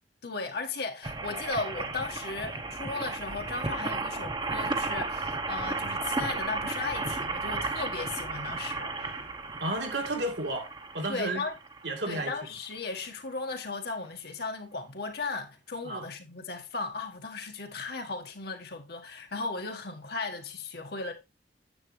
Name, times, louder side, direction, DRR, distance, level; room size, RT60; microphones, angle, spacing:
voice 1, 0.2-9.2 11.1-11.6 12.1-21.1, left 3 dB, 60° left, 1.5 m, -36 dB
sound 1, 1.0-12.2 12.8-12.9 13.0-13.1, right 3 dB, 25° right, 1.0 m, -34 dB
voice 2, 9.6-10.7 10.9-11.4 11.8-12.3 15.8-16.0, right 2 dB, 70° right, 2.3 m, -32 dB
9.9 x 7.5 x 3.2 m
head